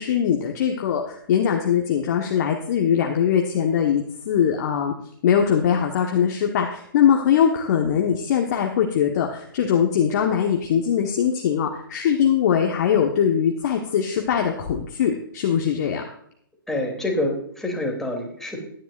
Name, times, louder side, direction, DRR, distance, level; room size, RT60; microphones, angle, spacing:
voice 1, 0.0-4.9 5.2-16.0, left 8 dB, 50° left, 2 dB, 1.3 m, -21 dB
voice 2, 16.7-18.6, left 1 dB, 5° left, 0 dB, 2.9 m, -26 dB
16.0 x 10.0 x 2.5 m, 0.67 s
figure-of-eight pair, 125°, 12 cm